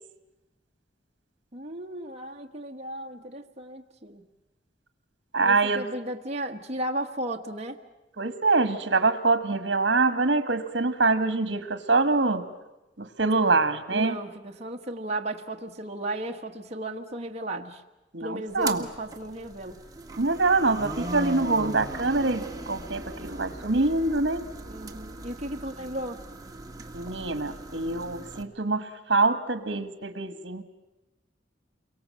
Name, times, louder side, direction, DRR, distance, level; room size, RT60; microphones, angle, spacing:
voice 1, 1.5-4.3 5.4-7.8 13.9-17.8 18.2-19.8 20.6-20.9 24.7-26.2, right 1 dB, 35° right, 2 dB, 1.4 m, -35 dB
voice 2, 5.3-5.8 8.2-12.4 13.0-14.2 18.1-18.8 20.2-24.4 26.9-30.6, right 3 dB, 75° right, 10 dB, 1.4 m, -25 dB
sound 1, 18.5-28.4, right 2 dB, 20° right, 1.7 m, -39 dB
29.0 x 23.0 x 7.6 m, 1.0 s
head